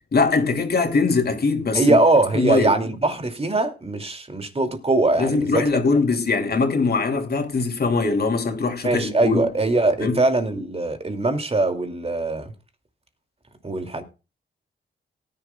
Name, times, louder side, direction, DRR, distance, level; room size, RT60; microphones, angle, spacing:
voice 1, 0.1-2.0 2.3-2.7 5.2-9.4 10.0-10.2, left 4 dB, 55° left, 2.8 m, -21 dB
voice 2, 1.7-5.7 8.8-12.5 13.6-14.0, right 2 dB, 30° right, 2.6 m, -21 dB
18.5 x 10.5 x 2.3 m
cardioid pair, 80°, 19 cm